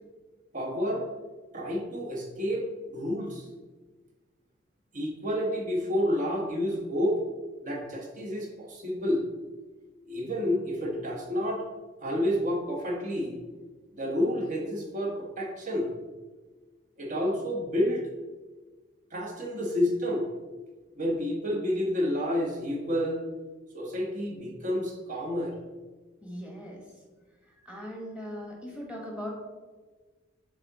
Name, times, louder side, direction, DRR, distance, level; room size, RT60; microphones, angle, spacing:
voice 1, 0.5-1.0 1.5-3.5 4.9-7.3 7.6-9.2 10.1-11.6 12.0-13.4 13.9-15.9 17.0-18.0 19.1-20.3 20.9-23.2 23.7-25.5, equal, 40° right, 0 dB, 1.1 m, -29 dB
voice 2, 26.2-26.8 27.5-29.3, equal, 5° right, -2 dB, 1.3 m, -39 dB
6.8 x 3.8 x 3.6 m, 1.3 s
head